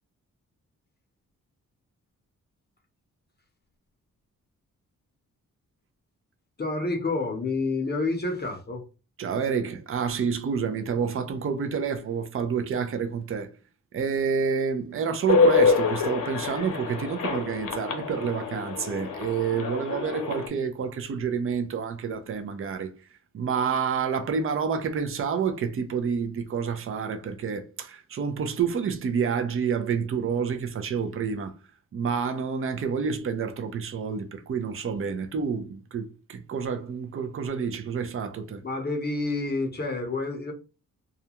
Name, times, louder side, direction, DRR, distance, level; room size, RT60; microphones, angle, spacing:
voice 1, 6.6-8.8 38.6-40.5, left 3 dB, 30° left, 0.7 m, -28 dB
voice 2, 9.2-13.5 13.9-22.9 23.3-31.5 31.9-38.6, right 6 dB, 45° right, 0.5 m, -28 dB
sound 1, 15.3-20.5, left 4 dB, 85° left, 0.7 m, -26 dB
2.4 x 2.2 x 2.8 m
wide cardioid pair, 110°, 32 cm